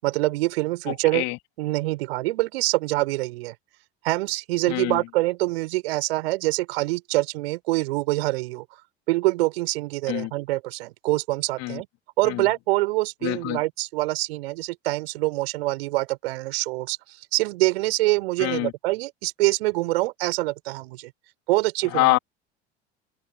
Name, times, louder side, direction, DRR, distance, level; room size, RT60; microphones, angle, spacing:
voice 1, 0.0-1.2 1.6-3.5 4.0-8.6 9.1-11.9 12.2-21.1 21.5-22.2, right 20 dB, 65° right, 5.4 m, -25 dB
voice 2, 4.7-5.0 10.1-10.3 11.6-11.8 12.3-12.4 13.2-13.6 18.4-18.7 21.9-22.2, left 20 dB, 50° left, 3.7 m, -25 dB
figure-of-eight pair, 65°, 33 cm